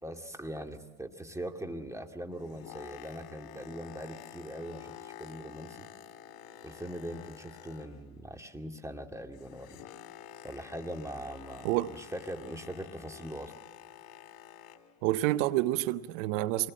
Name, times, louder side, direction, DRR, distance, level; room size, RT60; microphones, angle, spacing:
voice 1, 0.0-5.9 6.6-9.8 10.4-13.5, right 1 dB, 10° right, 2.3 m, -41 dB
Boat Water vehicle, 2.1-8.3 8.5-15.0 15.6-15.8, left 10 dB, 75° left, 2.0 m, -50 dB
voice 2, 15.0-16.7, right 16 dB, 90° right, 0.7 m, -28 dB
25.5 x 20.0 x 7.5 m
supercardioid pair, 80°, 37 cm